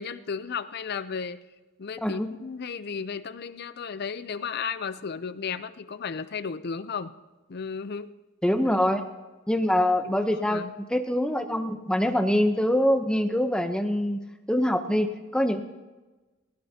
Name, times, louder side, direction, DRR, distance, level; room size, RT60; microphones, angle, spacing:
voice 1, 0.0-1.4 1.8-7.1 7.5-8.1 8.8-8.9 10.0-10.7, left 6 dB, 50° left, 14 dB, 0.5 m, -34 dB
voice 2, 8.4-9.1 9.5-14.2 14.5-15.6, left 1 dB, 5° left, 7 dB, 0.8 m, -24 dB
20.0 x 18.0 x 2.9 m, 1.2 s
head